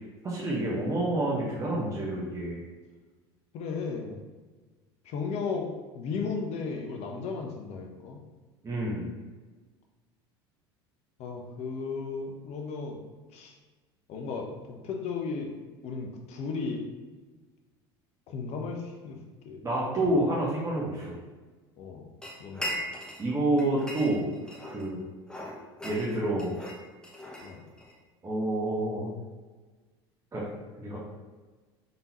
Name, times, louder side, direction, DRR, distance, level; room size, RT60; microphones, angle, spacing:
voice 1, 0.2-2.6 8.6-9.1 19.6-21.2 23.2-24.3 24.6-25.0 25.8-26.6 28.2-29.1 30.3-30.4 30.8-31.0, right 1 dB, 25° right, -6 dB, 1.1 m, -28 dB
voice 2, 3.5-4.2 5.0-5.7 5.9-8.2 11.2-13.0 13.3-13.5 14.1-14.5 14.8-15.5 15.8-16.9 18.3-19.2 19.4-20.0 21.8-22.1 22.4-22.7 27.4-27.6, left 4 dB, 55° left, 2 dB, 0.8 m, -35 dB
sound 1, 22.2-23.3 23.6-24.9 25.3-28.0, equal, 5° left, 0.8 m, -39 dB
3.9 x 3.6 x 2.9 m, 1.3 s
hypercardioid pair, 80°, 13 cm